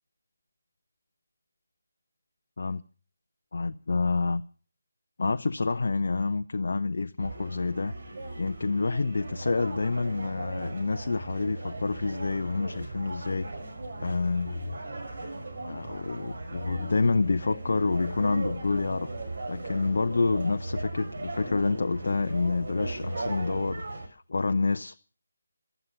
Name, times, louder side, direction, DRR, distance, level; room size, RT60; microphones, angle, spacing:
voice 1, 3.5-4.4 5.2-7.9 8.4-13.5 14.0-14.7 15.6-19.1 19.5-25.0, left 3 dB, 55° left, 0.7 m, -28 dB
sound 1, 7.2-24.1, right 2 dB, 55° right, 5.0 m, -37 dB
15.5 x 13.0 x 6.3 m
figure-of-eight pair, 155°, 0 cm